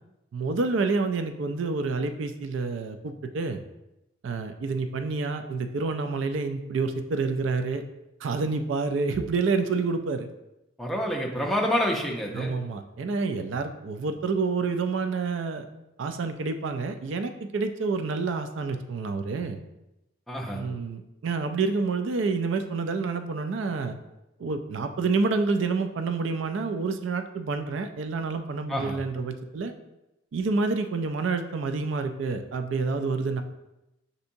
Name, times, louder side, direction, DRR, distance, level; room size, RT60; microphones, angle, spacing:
voice 1, 0.3-3.6 4.2-7.8 8.2-10.3 12.3-15.7 16.0-19.6 20.5-24.0 24.4-29.7 30.3-33.4, right 4 dB, 85° right, 8 dB, 0.4 m, -28 dB
voice 2, 10.8-12.5 20.3-20.6 28.7-28.9, equal, ahead, -2 dB, 0.5 m, -27 dB
6.7 x 2.7 x 2.6 m, 0.92 s
head